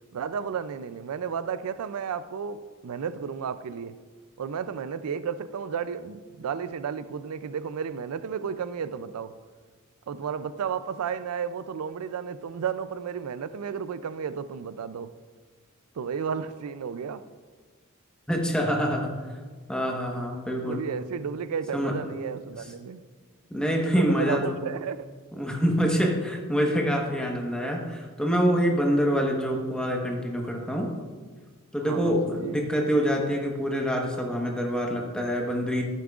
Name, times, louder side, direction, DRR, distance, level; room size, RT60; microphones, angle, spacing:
voice 1, 0.1-3.9 4.4-9.3 10.1-15.1 16.0-17.2 20.5-23.0 23.9-25.1 27.2-27.4 31.8-32.6, right 7 dB, 90° right, 0.4 m, -33 dB
voice 2, 18.3-19.1 19.7-20.8 21.7-22.0 23.5-24.6 25.3-30.9 31.7-35.8, equal, 5° left, 1.1 m, -26 dB
12.0 x 8.5 x 2.4 m
head